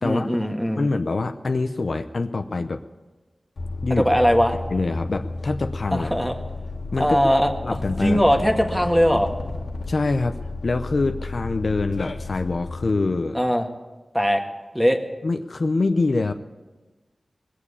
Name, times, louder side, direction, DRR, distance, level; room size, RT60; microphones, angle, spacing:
voice 1, 0.0-0.9 3.9-4.5 5.9-6.4 7.0-9.3 13.3-13.6 14.1-14.4 14.7-15.0, equal, ahead, 3 dB, 1.6 m, -20 dB
voice 2, 0.7-2.8 3.8-4.1 4.7-6.1 6.9-7.3 7.6-8.2 9.9-10.4 10.6-13.4 15.2-16.3, left 3 dB, 60° left, 7 dB, 0.7 m, -25 dB
sound 1, 3.6-12.9, left 2 dB, 85° left, 1.8 m, -32 dB
21.0 x 7.4 x 8.4 m, 1.2 s
wide cardioid pair, 80°, 0 cm